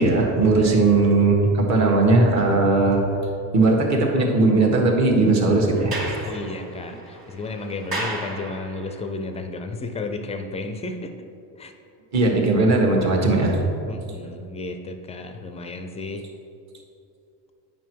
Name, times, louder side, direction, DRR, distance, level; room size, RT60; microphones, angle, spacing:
voice 1, 0.0-3.0 3.5-6.3 12.1-13.6, right 2 dB, 40° right, 0 dB, 1.5 m, -18 dB
voice 2, 0.6-1.2 6.3-11.1 11.6-11.7 13.9-16.2, left 3 dB, 15° left, 6 dB, 0.4 m, -33 dB
Sliding door, 5.7-9.0, right 2 dB, 20° right, 1.7 m, -34 dB
9.1 x 5.4 x 4.6 m, 2.7 s
supercardioid pair, 125°, 42 cm